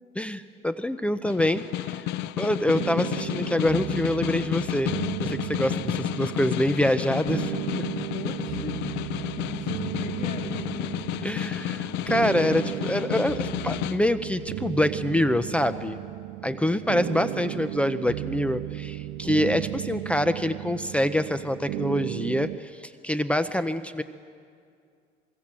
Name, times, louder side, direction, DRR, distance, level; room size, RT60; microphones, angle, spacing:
voice 1, 0.2-2.0 2.4-7.6 11.2-16.0 16.4-24.0, left 1 dB, 5° left, 12 dB, 0.7 m, -26 dB
Snare drum, 1.2-14.0, left 13 dB, 90° left, 0.6 m, -31 dB
sound 1, 2.7-22.6, right 18 dB, 90° right, 0.5 m, -35 dB
voice 2, 8.1-11.1 16.8-17.7, left 3 dB, 50° left, 2 dB, 3.6 m, -40 dB
24.5 x 23.0 x 7.6 m, 2.2 s
cardioid pair, 110°, 17 cm